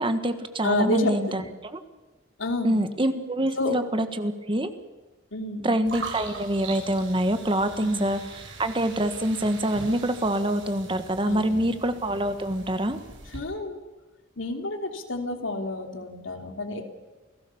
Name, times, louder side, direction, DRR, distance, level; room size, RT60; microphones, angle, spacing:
voice 1, 0.0-1.4 1.7-1.8 2.6-4.7 5.6-8.2 8.6-13.0, right 1 dB, 25° right, 9 dB, 1.5 m, -25 dB
voice 2, 0.6-1.5 2.4-2.9 3.6-3.8 5.3-5.8 7.8-8.1 11.3-11.7 13.3-13.8 14.4-16.8, left 2 dB, 85° left, 5 dB, 3.2 m, -29 dB
sound 1, 5.9-13.4, right 3 dB, 80° right, 8.0 m, -41 dB
28.5 x 17.5 x 7.2 m, 1.2 s
head